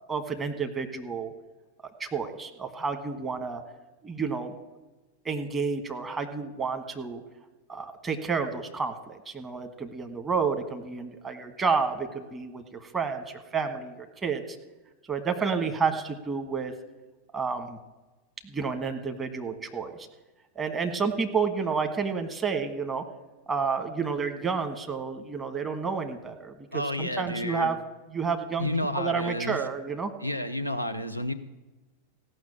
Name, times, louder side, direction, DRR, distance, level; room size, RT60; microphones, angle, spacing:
voice 1, 0.0-1.3 2.0-3.6 4.0-4.5 5.2-7.2 7.7-14.6 15.1-16.7 17.3-17.8 18.4-20.1 20.5-23.0 23.5-27.8 28.1-28.7 28.9-30.1, right 5 dB, 20° right, 6 dB, 1.4 m, -30 dB
voice 2, 26.7-27.7 28.6-29.6 30.2-31.3, left 1 dB, 90° right, 10 dB, 0.6 m, -30 dB
16.0 x 6.2 x 8.7 m, 1.2 s
figure-of-eight pair, 90°, 0 cm